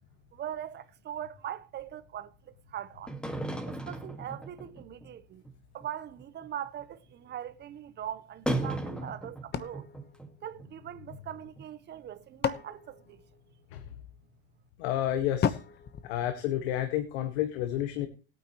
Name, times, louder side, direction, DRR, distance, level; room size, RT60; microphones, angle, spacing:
voice 1, 0.3-3.1 3.7-5.4 5.7-9.9 10.4-13.2, right 10 dB, 35° right, 1.0 m, -41 dB
sound 1, 3.1-5.1 5.5-5.6 5.8-5.9 6.2-6.5 6.8-6.9 8.5-10.3 10.6-10.7 11.1-11.2 11.6-11.7, right 1 dB, 5° left, 1.9 m, -35 dB
sound 2, 9.5-11.1 11.9-13.9 15.4-17.0, left 8 dB, 30° left, 1.1 m, -35 dB
voice 2, 14.8-15.6 16.0-18.1, left 12 dB, 75° left, 1.8 m, -30 dB
20.0 x 9.3 x 3.1 m
supercardioid pair, 125°, 32 cm